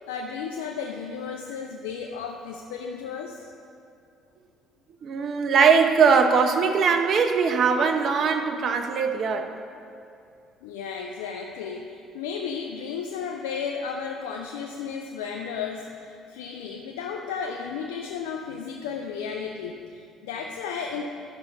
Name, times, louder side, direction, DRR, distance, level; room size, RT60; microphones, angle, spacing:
voice 1, 0.1-3.5 10.6-21.0, left 6 dB, 85° left, 2 dB, 0.5 m, -34 dB
voice 2, 5.0-9.5, right 5 dB, 55° right, 7 dB, 0.8 m, -21 dB
13.0 x 5.8 x 5.3 m, 2.5 s
hypercardioid pair, 60°, 0 cm